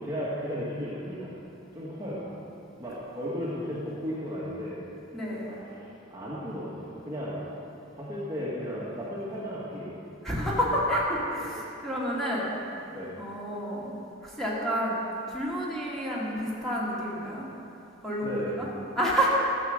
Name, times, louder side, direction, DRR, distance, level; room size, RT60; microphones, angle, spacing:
voice 1, 0.0-1.3 1.7-2.2 2.8-4.8 5.3-7.4 7.9-10.0 12.8-13.1 18.2-18.5, equal, 15° right, -8 dB, 1.6 m, -35 dB
voice 2, 5.1-5.5 10.2-12.5 13.2-13.9 14.4-15.0 15.3-17.5 18.0-18.7 19.0-19.3, equal, ahead, -7 dB, 2.1 m, -29 dB
12.0 x 7.6 x 6.5 m, 2.8 s
head